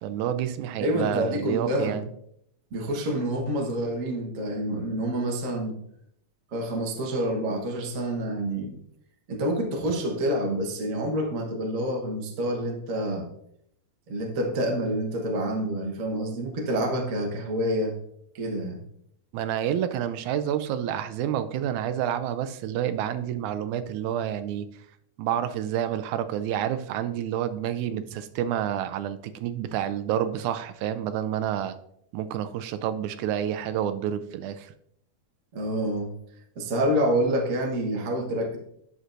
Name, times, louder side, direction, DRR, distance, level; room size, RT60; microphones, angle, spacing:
voice 1, 0.0-2.1 19.3-24.7 25.2-31.8 32.1-34.7, right 10 dB, 90° right, 11 dB, 2.0 m, -29 dB
voice 2, 0.8-2.0 2.7-5.8 6.5-8.8 9.3-13.3 14.1-18.0 18.3-18.8 35.5-36.1 36.5-38.6, right 1 dB, 60° right, 2 dB, 0.8 m, -27 dB
9.6 x 6.6 x 2.5 m, 0.72 s
omnidirectional pair, 3.3 m